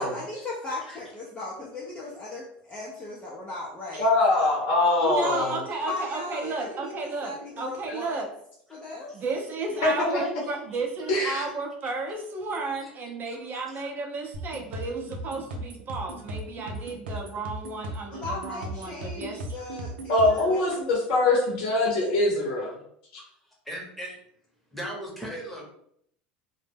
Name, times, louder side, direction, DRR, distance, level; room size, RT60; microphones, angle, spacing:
voice 1, 0.0-4.1 5.2-8.2 8.7-9.1 18.1-20.6, left 2 dB, 20° left, -5 dB, 0.6 m, -37 dB
voice 2, 4.0-5.6 9.8-10.2 11.1-11.4 20.1-22.7, left 2 dB, 70° left, -2 dB, 0.7 m, -23 dB
voice 3, 5.0-8.3 9.1-19.4 20.3-20.5, right 3 dB, 40° right, 2 dB, 0.7 m, -33 dB
voice 4, 13.3-13.8 17.1-17.2 20.3-20.5 23.2-23.3 23.6-24.2 24.7-25.7, equal, ahead, -3 dB, 1.0 m, -39 dB
sound 1, 14.3-20.5, right 1 dB, 90° right, 0.5 m, -37 dB
2.1 x 2.0 x 3.3 m, 0.69 s
hypercardioid pair, 95°, 5 cm